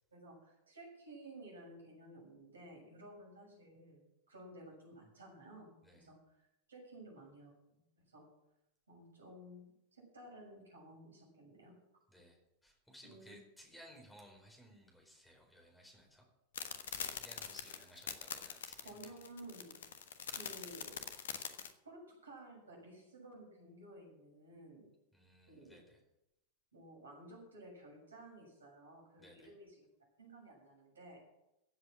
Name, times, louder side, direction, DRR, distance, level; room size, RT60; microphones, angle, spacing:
voice 1, 0.1-4.0 4.3-8.3 8.9-11.8 13.0-13.4 18.8-19.8 20.3-21.1 21.8-24.9 25.5-25.8 26.7-29.9 30.2-31.2, right 1 dB, 70° right, -1 dB, 6.9 m, -55 dB
voice 2, 12.6-16.2 17.0-19.0 25.1-26.0 29.2-29.5, equal, 5° left, 1 dB, 4.4 m, -59 dB
sound 1, 16.5-21.7, left 8 dB, 60° left, 1.2 m, -43 dB
15.5 x 8.0 x 7.5 m, 0.87 s
figure-of-eight pair, 90°, 0 cm